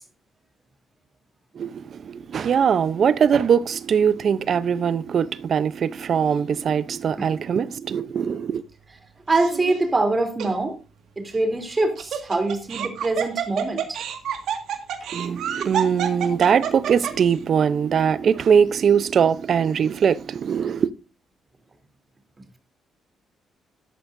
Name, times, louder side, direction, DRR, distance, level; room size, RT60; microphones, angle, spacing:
voice 1, 1.6-8.6 15.1-20.9, right 7 dB, 55° right, 0.7 m, -21 dB
voice 2, 9.3-10.8 11.2-14.0, right 2 dB, 25° right, 3.1 m, -24 dB
Laughter, 9.3-9.8 10.4-10.5 11.7-17.3, right 9 dB, 75° right, 1.9 m, -28 dB
13.0 x 11.5 x 2.6 m
cardioid pair, 90°, 0 cm